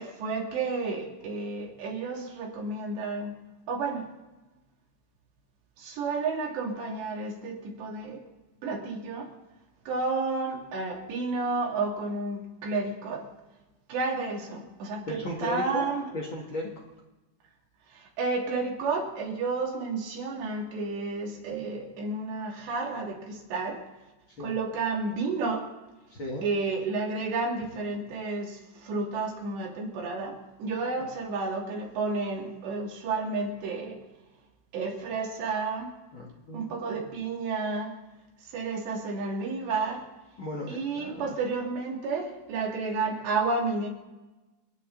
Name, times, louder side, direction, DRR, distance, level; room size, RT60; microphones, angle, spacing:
voice 1, 0.0-3.3 3.7-4.1 5.8-8.2 8.6-9.3 9.9-13.3 13.9-16.1 17.9-23.8 24.4-25.7 26.4-34.1 34.7-35.9 36.5-38.0 38.4-40.0 40.7-43.9, right 3 dB, 85° right, -1 dB, 5.0 m, -31 dB
voice 2, 15.1-15.9 16.1-16.7 24.4-24.5 26.1-26.4 31.0-31.1 36.1-36.6 40.4-41.4, left 1 dB, 40° left, -1 dB, 2.0 m, -35 dB
29.0 x 10.0 x 4.0 m, 1.1 s
omnidirectional pair, 4.8 m